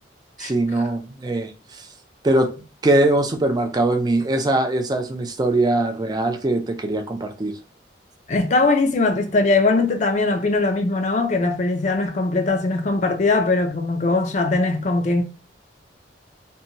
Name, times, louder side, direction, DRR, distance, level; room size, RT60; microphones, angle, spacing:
voice 1, 0.4-1.8 2.2-7.5, right 2 dB, 20° right, 0.4 m, -21 dB
voice 2, 8.3-15.2, left 3 dB, 40° left, 0.5 m, -20 dB
2.6 x 2.2 x 2.8 m
head